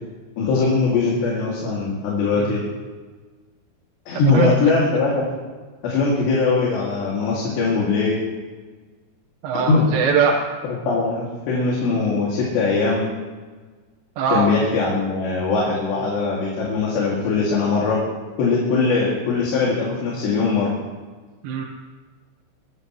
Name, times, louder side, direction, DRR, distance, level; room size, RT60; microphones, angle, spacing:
voice 1, 0.4-2.6 4.1-5.2 5.8-8.2 9.7-9.8 10.8-13.0 14.3-18.0 18.4-20.7, left 4 dB, 70° left, -5 dB, 4.6 m, -21 dB
voice 2, 9.4-10.4 14.2-14.5 21.4-21.7, right 6 dB, 75° right, -2 dB, 3.2 m, -21 dB
24.0 x 16.0 x 3.2 m, 1.4 s
omnidirectional pair, 5.2 m